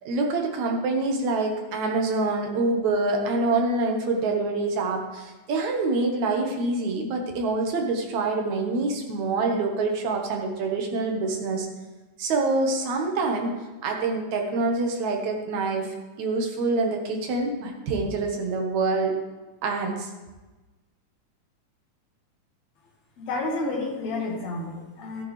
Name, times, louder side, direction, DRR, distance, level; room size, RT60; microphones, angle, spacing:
voice 1, 0.0-11.7 12.2-13.5 13.8-19.1 19.6-20.1, right 3 dB, 65° right, 2 dB, 2.6 m, -26 dB
voice 2, 23.2-25.2, left 2 dB, 60° left, -1 dB, 3.0 m, -30 dB
13.5 x 10.5 x 3.3 m, 1.2 s
omnidirectional pair, 3.7 m